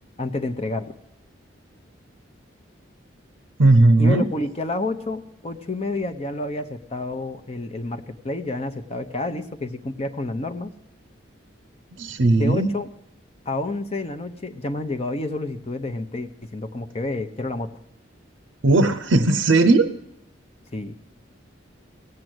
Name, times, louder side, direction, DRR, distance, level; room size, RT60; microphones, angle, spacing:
voice 1, 0.2-0.9 4.0-10.7 12.3-12.9 13.5-17.7 20.7-20.9, left 2 dB, 30° left, 7 dB, 0.7 m, -29 dB
voice 2, 3.6-4.3 12.0-12.7 18.6-19.9, right 2 dB, 80° right, 10 dB, 0.6 m, -17 dB
17.0 x 7.7 x 7.8 m, 0.79 s
head